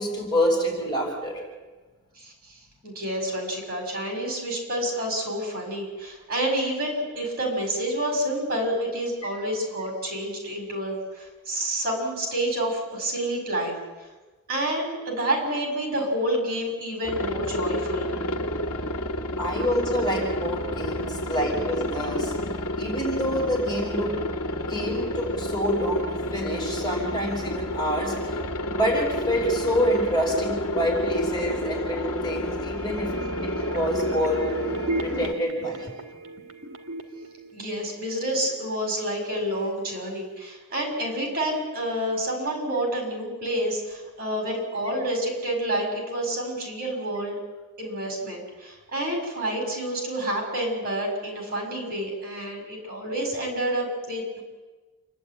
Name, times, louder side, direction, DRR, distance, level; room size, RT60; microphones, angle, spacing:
voice 1, 0.0-1.4 9.2-9.3 19.4-22.3 22.8-24.1 24.6-26.0 26.3-28.1 28.7-33.1 33.4-34.6 35.0-35.9, equal, 20° left, -1 dB, 6.4 m, -27 dB
voice 2, 2.2-13.8 14.5-18.1 37.5-47.4 47.8-54.4, right 1 dB, 45° right, 1 dB, 6.4 m, -29 dB
Aircraft, 17.0-35.3, left 1 dB, 75° left, 1.5 m, -30 dB
sound 1, 32.7-38.4 38.7-38.8, right 2 dB, 60° right, 1.9 m, -35 dB
28.0 x 12.0 x 9.0 m, 1.3 s
head